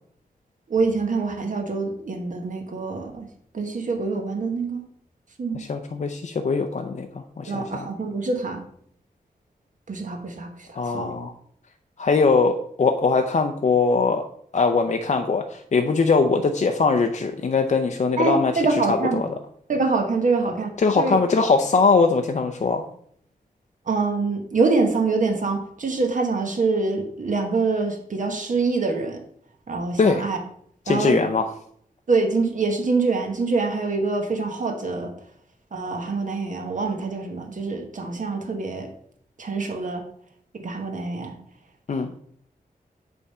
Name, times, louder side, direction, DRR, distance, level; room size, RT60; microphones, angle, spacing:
voice 1, 0.7-3.3 3.5-4.8 5.4-5.6 7.4-8.6 9.9-11.2 18.2-19.2 19.7-20.7 21.0-21.2 23.9-29.2 29.7-30.4 30.9-31.2 32.1-35.1 35.7-38.9 39.4-40.1 40.6-41.3, right 3 dB, 55° right, 3 dB, 1.1 m, -25 dB
voice 2, 5.5-7.9 10.7-11.3 12.0-14.2 14.5-18.5 18.9-19.2 20.8-22.8 30.0-30.3 30.9-31.5 41.9-42.1, left 4 dB, 45° left, 5 dB, 0.5 m, -21 dB
8.4 x 3.5 x 5.4 m, 0.65 s
wide cardioid pair, 150°, 16 cm